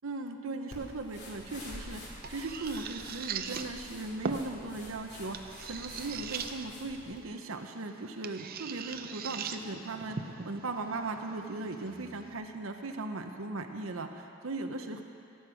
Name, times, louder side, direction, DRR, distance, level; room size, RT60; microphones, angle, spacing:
voice 1, 0.0-2.0 2.3-15.0, right 2 dB, 85° right, 5 dB, 0.8 m, -38 dB
sound 1, 0.7-7.2, left 1 dB, 55° left, 2.6 m, -47 dB
sound 2, 1.4-12.3, right 6 dB, 45° right, 0.5 m, -42 dB
Bowed string instrument, 8.4-13.4, right 1 dB, 20° right, 1.7 m, -58 dB
16.0 x 8.0 x 5.1 m, 2.6 s
head